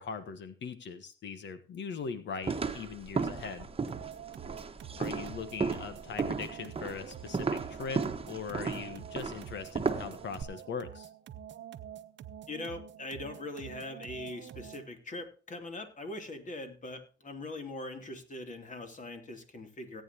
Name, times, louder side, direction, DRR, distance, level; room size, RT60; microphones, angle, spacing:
voice 1, 0.0-3.7 5.0-11.1, left 5 dB, 65° left, 11 dB, 1.4 m, -40 dB
sound 1, 2.4-10.4, right 4 dB, 30° right, 1.3 m, -35 dB
sound 2, 3.9-15.0, right 9 dB, 65° right, 1.0 m, -47 dB
voice 2, 12.5-20.0, left 2 dB, 40° left, 6 dB, 3.0 m, -41 dB
17.5 x 9.0 x 2.9 m, 0.36 s
cardioid pair, 90°, 20 cm